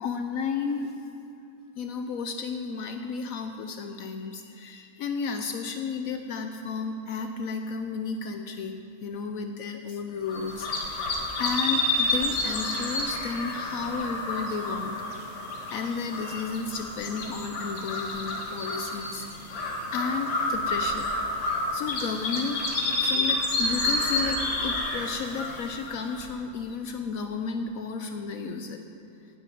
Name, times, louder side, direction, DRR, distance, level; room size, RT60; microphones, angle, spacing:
voice 1, 0.0-1.1 1.8-8.7 9.0-14.9 15.7-21.0 21.4-22.6 23.0-28.8, left 5 dB, 90° left, 6 dB, 0.7 m, -33 dB
sound 1, 10.3-26.3, left 2 dB, 65° left, 2.2 m, -29 dB
9.8 x 8.0 x 9.2 m, 2.5 s
omnidirectional pair, 2.2 m